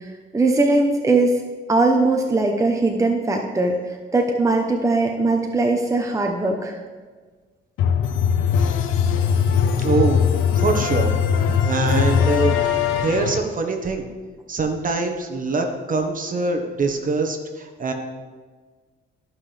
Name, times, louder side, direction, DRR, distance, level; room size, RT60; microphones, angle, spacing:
voice 1, 0.3-1.3 1.7-3.8 4.1-6.8, right 2 dB, 15° right, 2 dB, 1.0 m, -20 dB
sound 1, 7.8-13.4, left 7 dB, 85° left, 0.7 m, -20 dB
voice 2, 9.8-10.2 10.6-11.1 11.6-12.6 13.0-14.1 14.5-17.9, right 3 dB, 45° right, 4 dB, 1.3 m, -23 dB
14.0 x 5.9 x 3.4 m, 1.4 s
cardioid pair, 90°, 20 cm